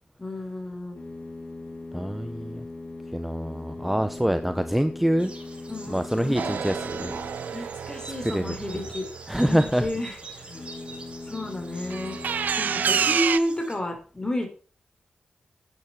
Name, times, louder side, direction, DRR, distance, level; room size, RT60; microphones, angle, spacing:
voice 1, 0.2-1.0 5.7-6.6 7.5-9.1 9.3-10.2 11.2-12.2 12.6-14.5, left 1 dB, 25° left, 5 dB, 5.0 m, -31 dB
sound 1, 0.9-7.8 10.4-13.2, left 2 dB, 50° left, 3.6 m, -40 dB
voice 2, 1.9-2.7 3.1-5.3 5.9-7.1 7.4-7.7 8.2-8.5 9.3-9.9 12.8-12.9, equal, 5° right, 10 dB, 1.0 m, -25 dB
sound 2, 5.2-13.8, right 3 dB, 40° right, 6.9 m, -45 dB
sound 3, 6.3-10.1 11.9-13.4, right 7 dB, 80° right, 0.7 m, -29 dB
11.0 x 9.5 x 6.0 m, 0.39 s
cardioid pair, 65°, 3 cm